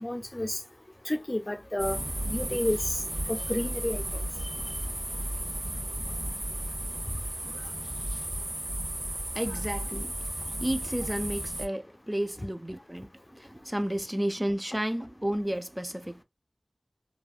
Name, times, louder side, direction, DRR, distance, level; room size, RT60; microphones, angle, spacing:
voice 1, 0.0-0.6 1.1-3.0 3.3-4.3 9.5-9.6, left 1 dB, 35° left, 0.5 m, -31 dB
sound 1, 1.8-11.7, right 1 dB, 40° right, 1.1 m, -34 dB
voice 2, 9.3-10.1 10.6-16.2, right 1 dB, 15° right, 0.4 m, -32 dB
3.2 x 2.3 x 2.4 m
wide cardioid pair, 40°, 0 cm